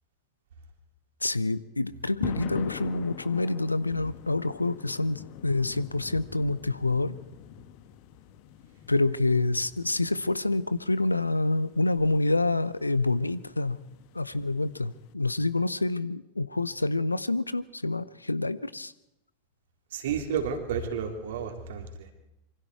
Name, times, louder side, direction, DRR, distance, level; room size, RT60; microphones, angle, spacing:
voice 1, 1.2-7.1 8.9-13.8 14.1-18.9, left 2 dB, 80° left, 18 dB, 0.7 m, -27 dB
sound 1, 2.2-15.1, left 10 dB, 45° left, 1.5 m, -43 dB
voice 2, 19.9-22.1, right 7 dB, 55° right, 4 dB, 3.2 m, -31 dB
26.5 x 24.0 x 4.7 m, 0.89 s
figure-of-eight pair, 90°, 0 cm